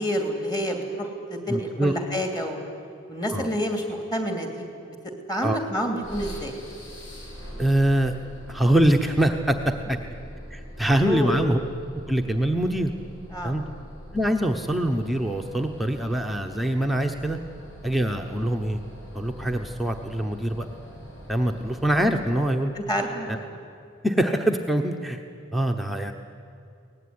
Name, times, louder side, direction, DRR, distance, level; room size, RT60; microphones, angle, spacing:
voice 1, 0.0-2.6 3.1-3.8 4.1-4.5 5.3-6.6 11.0-11.3 13.3-13.6 22.8-23.5, equal, 20° left, 4 dB, 2.9 m, -28 dB
voice 2, 1.5-1.9 3.3-3.5 5.4-5.6 7.6-8.1 8.5-10.0 10.5-11.6 12.1-12.9 13.4-13.6 14.1-17.4 17.8-18.8 19.1-20.7 21.3-22.7 23.3-23.4 24.0-25.2 25.5-26.1, right 1 dB, ahead, 2 dB, 0.9 m, -24 dB
sound 1, 6.0-22.2, equal, 60° left, 6.7 m, -43 dB
23.5 x 19.0 x 9.6 m, 2.6 s
head